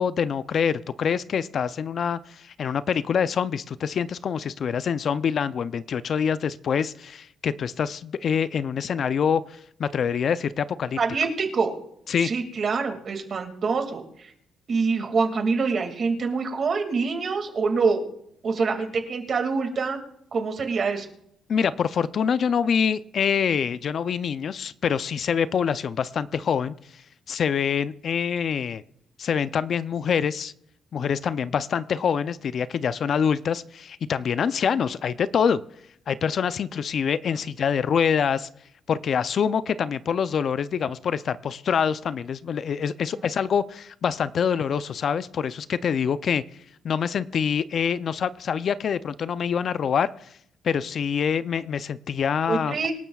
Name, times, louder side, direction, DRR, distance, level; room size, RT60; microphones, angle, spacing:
voice 1, 0.0-11.0 12.1-12.3 21.5-28.8 29.2-30.5 30.9-35.6 36.1-38.5 38.9-46.4 46.8-50.3 50.6-52.9, left 7 dB, 55° left, 15 dB, 0.5 m, -25 dB
voice 2, 11.0-11.7 12.2-14.3 14.7-18.0 18.4-20.0 20.3-21.1 43.1-43.3 52.5-52.9, right 4 dB, 50° right, 4 dB, 2.2 m, -25 dB
25.5 x 12.0 x 2.4 m, 0.73 s
cardioid pair, 90°, 0 cm